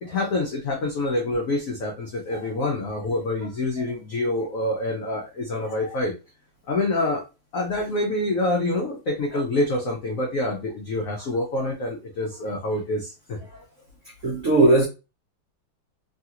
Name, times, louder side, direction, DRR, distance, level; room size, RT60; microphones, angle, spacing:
voice 1, 0.0-6.1 6.7-7.2 7.5-13.4, left 2 dB, 80° left, 0.7 m, -26 dB
voice 2, 5.6-6.0 9.3-9.4 11.6-11.7 14.2-14.8, right 2 dB, 85° right, 0.6 m, -21 dB
3.2 x 2.4 x 2.8 m
omnidirectional pair, 2.2 m